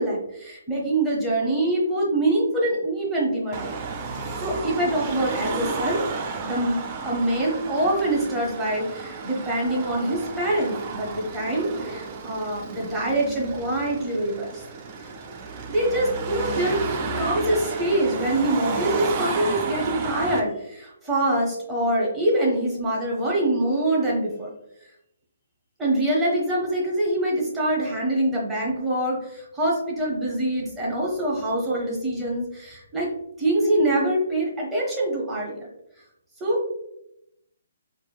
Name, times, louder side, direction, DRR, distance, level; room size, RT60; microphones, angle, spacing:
voice 1, 0.0-3.7 4.0-6.0 6.4-6.8 7.0-14.5 15.7-16.8 17.2-24.5 25.8-33.1 33.4-35.7 36.4-36.7, right 1 dB, 5° right, -5 dB, 0.9 m, -24 dB
Car passing by / Traffic noise roadway noise / Engine, 3.5-20.4, right 4 dB, 25° right, 0.4 m, -32 dB
4.3 x 2.5 x 2.3 m, 0.80 s
hypercardioid pair, 155°, 0 cm